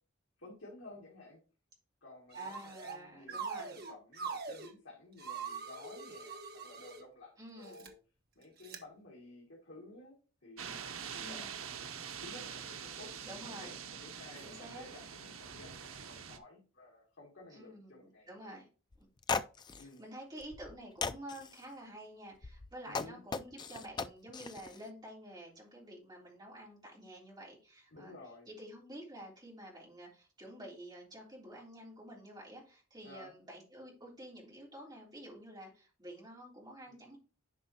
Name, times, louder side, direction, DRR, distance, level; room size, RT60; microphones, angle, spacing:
voice 1, 0.4-1.4 2.0-8.0 8.4-11.5 12.2-18.5 19.8-20.0 22.9-23.2 27.9-28.5 33.0-33.3 36.9-37.0, left 2 dB, 65° left, -2 dB, 2.3 m, -54 dB
sound 1, 2.3-3.0 3.3-4.7 5.2-7.0 7.6-7.9 8.6-8.8, right 5 dB, 50° right, 1.3 m, -42 dB
voice 2, 2.4-3.8 7.4-7.9 11.2-11.5 13.2-13.8 14.4-14.9 17.5-18.7 19.0-19.1 19.7-28.2 28.5-37.2, right 1 dB, 20° right, -4 dB, 3.5 m, -50 dB
sound 2, 10.6-16.4, right 7 dB, 85° right, 0.9 m, -45 dB
sound 3, 18.9-19.0 19.2-19.8 20.4-20.7 21.0-21.6 22.4-24.8, left 4 dB, 20° left, 0.3 m, -37 dB
10.5 x 5.4 x 2.8 m, 0.35 s
head